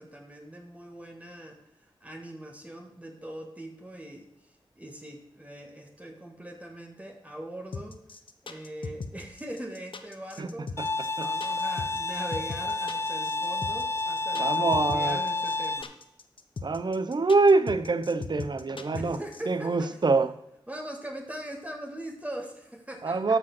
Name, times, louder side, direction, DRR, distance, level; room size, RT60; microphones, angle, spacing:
voice 1, 0.0-1.6 2.0-4.3 4.8-8.0 8.4-15.9 18.9-20.0 20.7-23.4, right 1 dB, 15° right, 2 dB, 1.7 m, -41 dB
sound 1, 7.7-19.4, left 4 dB, 65° left, 1.0 m, -38 dB
Bowed string instrument, 10.8-15.8, left 3 dB, 30° left, 0.5 m, -29 dB
voice 2, 14.4-15.2 16.6-19.2 19.5-20.3 23.0-23.4, right 3 dB, 50° right, 11 dB, 0.8 m, -25 dB
13.5 x 5.1 x 6.0 m, 0.83 s
wide cardioid pair, 80°, 10 cm